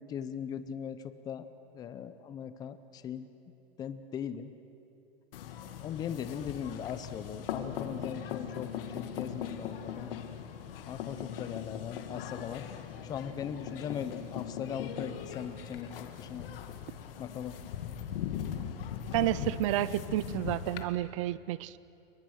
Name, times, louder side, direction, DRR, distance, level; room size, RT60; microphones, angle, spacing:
voice 1, 0.0-1.5 1.7-3.3 3.8-4.5 5.8-10.1 10.9-12.7 13.0-16.5 17.2-17.6, left 8 dB, 15° left, 12 dB, 0.6 m, -39 dB
sound 1, 5.3-20.8, left 9 dB, 65° left, 2.2 m, -40 dB
voice 2, 19.1-21.8, right 15 dB, 35° right, 18 dB, 0.5 m, -30 dB
29.5 x 22.5 x 6.4 m, 2.7 s
supercardioid pair, 170°, 30 cm